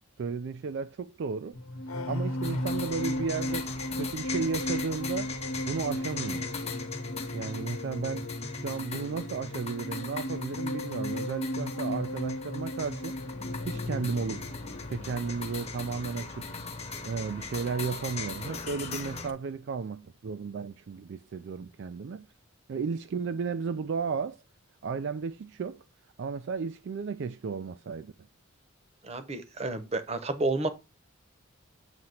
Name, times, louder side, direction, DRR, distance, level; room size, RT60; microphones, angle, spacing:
voice 1, 0.0-1.6 2.1-5.3 5.7-6.5 7.3-8.3 8.6-13.2 13.7-14.5 14.9-16.5 17.0-22.3 22.7-24.4 24.8-25.8 26.2-28.1, right 5 dB, 60° right, 0.4 m, -34 dB
sound 1, 1.5-18.2 18.4-18.8, left 1 dB, 85° left, 1.0 m, -36 dB
sound 2, 2.4-19.3, left 4 dB, 30° left, 1.0 m, -40 dB
voice 2, 29.0-30.7, right 2 dB, 30° right, 0.9 m, -30 dB
7.8 x 2.9 x 5.6 m
head